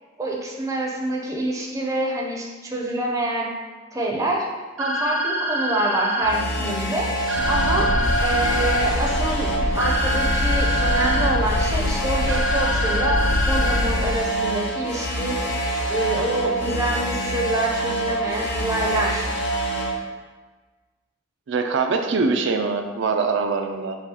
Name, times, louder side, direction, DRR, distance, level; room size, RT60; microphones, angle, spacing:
voice 1, 0.2-3.5 3.9-4.5 4.8-7.1 7.5-7.9 8.2-13.2 13.5-15.4 15.9-19.3, right 1 dB, 15° right, -2 dB, 0.5 m, -26 dB
sound 1, 4.8-6.3 7.3-8.8 9.8-11.3 12.3-13.8, equal, 85° right, 0.8 m, -26 dB
sound 2, 6.2-20.0, right 1 dB, 65° left, 0.7 m, -26 dB
sound 3, 7.3-14.2, left 2 dB, 45° left, 0.3 m, -25 dB
voice 2, 21.5-24.0, right 4 dB, 65° right, 5 dB, 0.4 m, -23 dB
6.8 x 2.3 x 2.8 m, 1.3 s
head